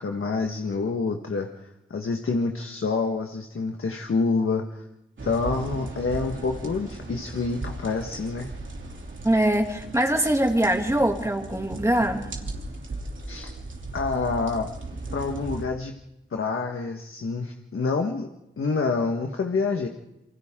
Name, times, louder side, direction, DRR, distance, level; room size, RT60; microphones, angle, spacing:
voice 1, 0.0-1.5 1.9-4.8 5.2-8.5 13.3-13.5 13.9-14.7 15.1-16.0 16.3-18.3 18.6-19.9, left 4 dB, 75° left, 3 dB, 1.5 m, -27 dB
sound 1, 5.2-15.6, right 2 dB, 65° right, 3.1 m, -37 dB
voice 2, 9.2-12.3, right 1 dB, 15° right, 2 dB, 2.6 m, -23 dB
28.0 x 24.5 x 3.8 m, 0.92 s
wide cardioid pair, 75°, 21 cm